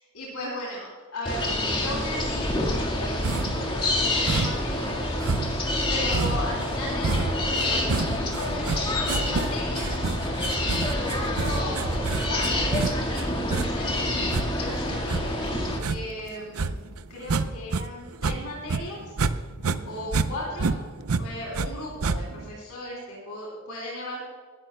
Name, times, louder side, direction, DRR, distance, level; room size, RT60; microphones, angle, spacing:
voice 1, 0.1-5.2 5.9-10.1 10.5-16.7 17.1-19.2 19.8-20.8 21.2-24.2, left 1 dB, 90° left, -5 dB, 3.3 m, -37 dB
sound 1, 1.2-15.8, left 1 dB, 20° left, 1.8 m, -27 dB
sound 2, 3.2-3.7 4.3-4.7 5.2-17.8 18.1-19.3 19.6-21.7 22.0-22.5, right 4 dB, 70° right, 0.6 m, -29 dB
21.0 x 12.0 x 2.3 m, 1.5 s
head